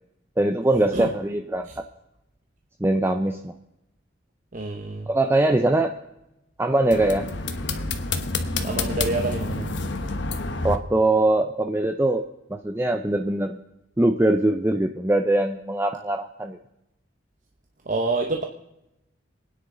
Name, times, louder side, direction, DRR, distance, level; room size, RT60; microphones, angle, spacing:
voice 1, 0.4-1.8 2.8-3.5 5.1-5.9 6.6-7.3 10.6-13.6 14.0-16.6, right 1 dB, 15° right, 6 dB, 0.5 m, -22 dB
voice 2, 4.5-5.1 8.6-9.7 17.9-18.4, right 3 dB, 45° right, 2 dB, 1.0 m, -27 dB
sound 1, 6.9-10.8, left 3 dB, 70° left, 1.1 m, -28 dB
26.0 x 9.7 x 3.9 m, 0.91 s
head